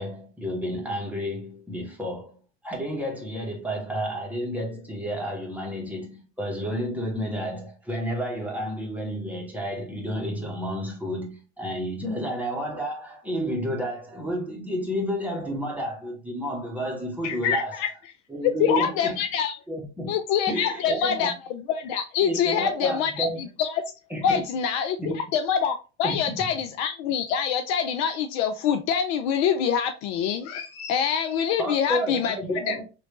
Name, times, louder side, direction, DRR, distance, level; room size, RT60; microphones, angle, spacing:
voice 1, 0.0-2.3 2.6-17.8 18.3-19.2 19.7-20.1 20.5-21.3 22.2-23.4 24.1-24.4 25.0-25.2 26.0-26.2 31.6-32.8, equal, 5° right, 1.2 m, -31 dB
voice 2, 17.2-17.9 18.4-19.6 20.1-23.8 24.2-32.4 32.6-32.7, left 8 dB, 50° left, 0.4 m, -25 dB
3.0 x 2.6 x 3.0 m
hypercardioid pair, 75°, 34 cm